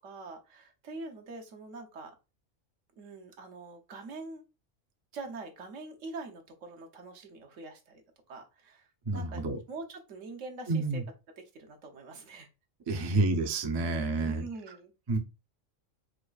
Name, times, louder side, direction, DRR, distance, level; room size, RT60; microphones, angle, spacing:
voice 1, 0.0-2.1 3.0-4.4 5.1-8.0 8.3-9.4 9.7-11.0 11.5-12.5 12.9-13.2 14.2-14.9, right 3 dB, 75° right, 1.2 m, -44 dB
voice 2, 9.1-9.6 10.7-11.0 12.9-14.5 15.1-15.2, right 3 dB, 45° right, 0.3 m, -29 dB
4.8 x 2.3 x 2.4 m
omnidirectional pair, 1.3 m